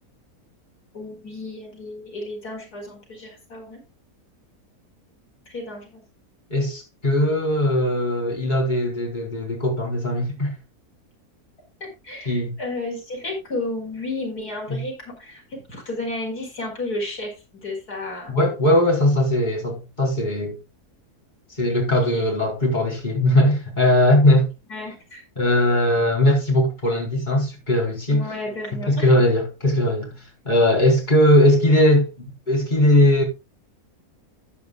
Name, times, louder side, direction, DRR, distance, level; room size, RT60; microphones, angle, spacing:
voice 1, 0.9-3.8 5.5-6.0 11.8-18.3 21.9-22.2 24.7-25.2 28.1-29.1, left 2 dB, 90° left, 5.5 m, -32 dB
voice 2, 6.5-10.5 12.2-12.5 14.7-14.8 18.3-20.6 21.6-24.5 25.4-28.2 28.9-30.1 30.4-33.2, left 1 dB, 30° left, 4.7 m, -19 dB
14.5 x 9.3 x 2.4 m
omnidirectional pair, 1.6 m